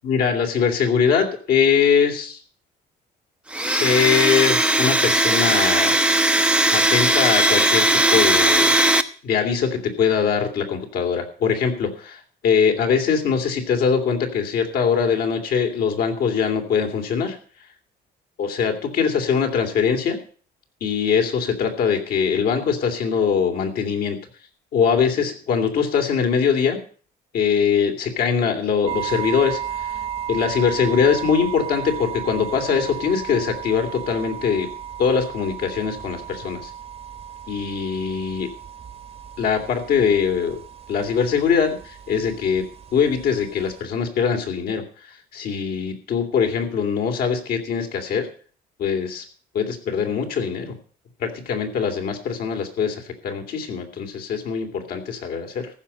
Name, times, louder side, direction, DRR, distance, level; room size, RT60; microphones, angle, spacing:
voice 1, 0.0-2.4 3.6-5.9 6.7-17.4 18.4-20.2 20.8-24.2 24.7-26.8 27.3-29.9 30.3-34.7 35.0-36.7 37.5-38.5 39.4-40.6 40.9-42.6 42.9-44.8 45.3-48.3 48.8-49.2 49.5-50.7 51.2-55.7, left 6 dB, 65° left, 4 dB, 3.0 m, -22 dB
Domestic sounds home sounds, 3.5-9.0, right 1 dB, 5° right, 0.8 m, -18 dB
sound 1, 28.9-43.8, right 9 dB, 35° right, 1.1 m, -34 dB
14.5 x 5.6 x 8.6 m, 0.43 s
cardioid pair, 110°, 17 cm